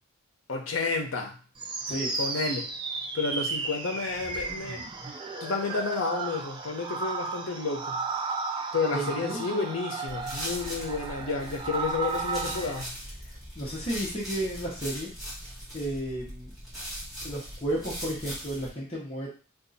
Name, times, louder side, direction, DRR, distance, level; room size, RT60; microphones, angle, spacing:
voice 1, 0.5-1.4 2.2-2.7 3.1-4.9 5.4-8.0 8.7-13.0, left 4 dB, 75° left, 3 dB, 0.7 m, -31 dB
sound 1, 1.6-12.8, right 4 dB, 25° right, 0.3 m, -34 dB
voice 2, 8.9-9.7 12.6-12.7 13.2-15.1 15.7-16.5 17.2-19.3, right 1 dB, 30° left, -6 dB, 0.9 m, -33 dB
sound 2, 10.1-18.7, equal, ahead, 1.3 m, -40 dB
2.7 x 2.4 x 4.0 m, 0.37 s
head